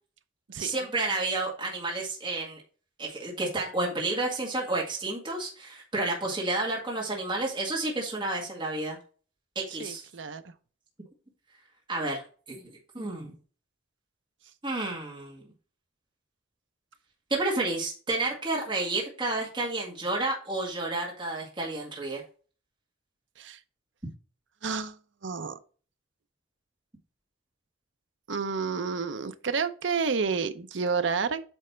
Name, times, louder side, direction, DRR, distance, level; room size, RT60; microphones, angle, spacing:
voice 1, 0.6-2.6 3.0-9.0 9.6-10.0 11.9-12.2 12.5-12.7 12.9-13.3 14.6-15.4 17.3-22.2, right 2 dB, 25° right, 2.0 m, -30 dB
voice 2, 9.8-10.5 23.4-23.6 24.6-25.0 25.2-25.6 28.3-31.4, right 5 dB, 65° right, 0.6 m, -30 dB
8.9 x 3.3 x 4.3 m
head